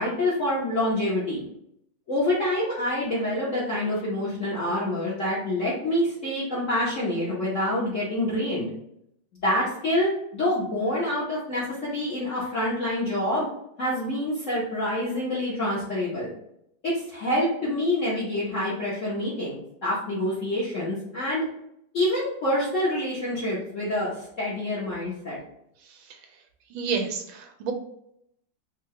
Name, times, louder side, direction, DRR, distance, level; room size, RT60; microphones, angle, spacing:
voice 1, 0.0-1.4 2.1-8.7 9.4-13.5 13.8-16.3 16.8-21.4 21.9-25.4, left 1 dB, 50° left, -8 dB, 1.1 m, -27 dB
voice 2, 25.9-26.2 26.7-27.7, right 5 dB, 90° right, 4 dB, 1.5 m, -30 dB
4.6 x 2.3 x 3.1 m, 0.75 s
omnidirectional pair, 2.2 m